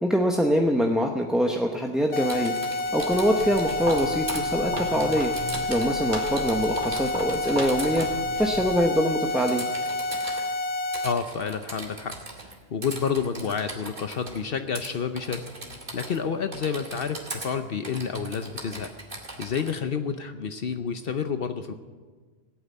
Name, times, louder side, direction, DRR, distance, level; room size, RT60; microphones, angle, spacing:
voice 1, 0.0-2.5 2.9-5.3 5.7-8.1 8.3-9.6, equal, ahead, 1 dB, 0.8 m, -24 dB
sound 1, 2.1-11.1, left 2 dB, 90° left, 1.1 m, -29 dB
Typing, 2.2-4.4 5.0-6.0 6.3-8.1 9.5-10.4 10.9-12.5 12.8-14.4 14.8-14.9 15.2-16.2 16.5-17.5 17.8-19.7, right 2 dB, 45° right, 2.4 m, -39 dB
Walk footsteps, 3.0-9.0, equal, 25° right, 2.8 m, -37 dB
voice 2, 11.0-12.1 12.7-15.4 15.9-18.9 19.4-21.7, left 6 dB, 60° left, 8 dB, 0.9 m, -29 dB
16.5 x 8.8 x 9.3 m, 1.4 s
omnidirectional pair, 1.1 m